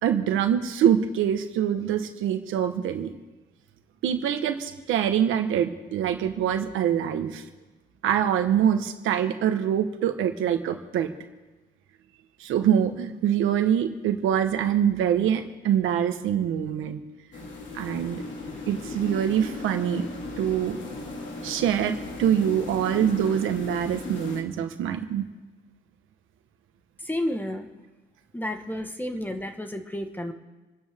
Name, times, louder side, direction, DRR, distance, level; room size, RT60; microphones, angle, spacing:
voice 1, 0.0-3.1 4.0-7.4 8.0-11.1 12.4-17.0 17.7-18.2 18.7-20.1 20.4-20.8 21.4-25.3, right 9 dB, 85° right, 7 dB, 1.3 m, -24 dB
sound 1, 17.3-24.4, left 2 dB, 70° left, 2.5 m, -37 dB
voice 2, 27.0-27.7 28.3-30.3, left 1 dB, 10° left, 6 dB, 1.5 m, -31 dB
28.0 x 9.8 x 3.7 m, 1.2 s
cardioid pair, 90°, 20 cm